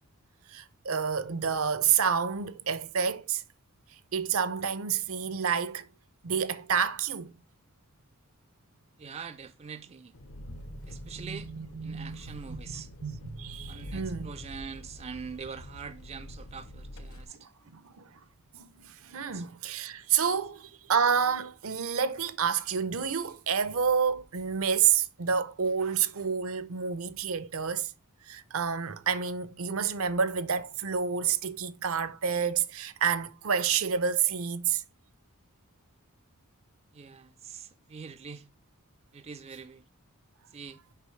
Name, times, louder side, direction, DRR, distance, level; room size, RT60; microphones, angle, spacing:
voice 1, 0.5-3.4 4.1-5.9 6.2-7.3 10.7-14.3 17.3-18.2 18.5-27.9 28.2-34.8, right 7 dB, 65° right, 0.7 m, -29 dB
voice 2, 9.0-10.1 10.9-11.5 11.8-12.9 13.7-17.5 19.3-19.5 36.9-38.5 39.1-39.8 40.5-40.8, right 6 dB, 30° right, 0.4 m, -43 dB
Engine, 10.1-17.2, equal, 60° left, 0.9 m, -45 dB
6.8 x 5.5 x 3.2 m
head